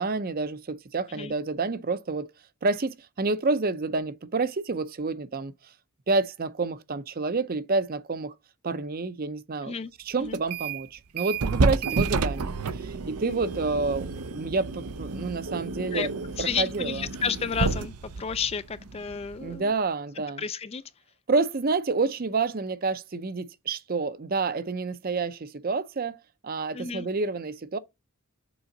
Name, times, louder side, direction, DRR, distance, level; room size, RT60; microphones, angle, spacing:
voice 1, 0.0-2.3 2.6-5.5 6.1-8.3 8.6-16.1 16.4-17.1 19.4-20.4 21.3-26.2 26.4-27.8, right 3 dB, 40° right, 0.5 m, -29 dB
sound 1, 10.3-10.9 11.2-19.6, right 4 dB, 85° right, 0.6 m, -30 dB
voice 2, 16.4-19.7 20.4-20.8 26.7-27.1, left 6 dB, 25° left, 0.3 m, -31 dB
6.9 x 4.9 x 3.8 m
head